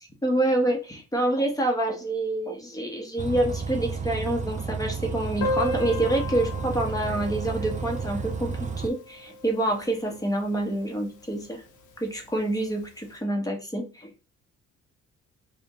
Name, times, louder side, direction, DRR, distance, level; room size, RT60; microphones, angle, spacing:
voice 1, 0.2-11.6 12.0-14.1, right 1 dB, 10° left, 2 dB, 1.2 m, -27 dB
Bus, 3.2-8.9, right 5 dB, 25° right, 0.5 m, -32 dB
Piano, 5.4-10.8 11.0-11.1 11.3-11.5 11.8-11.9 12.7-12.8, left 1 dB, 80° left, 1.1 m, -35 dB
5.0 x 2.5 x 3.1 m, 0.31 s
cardioid pair, 90°, 30 cm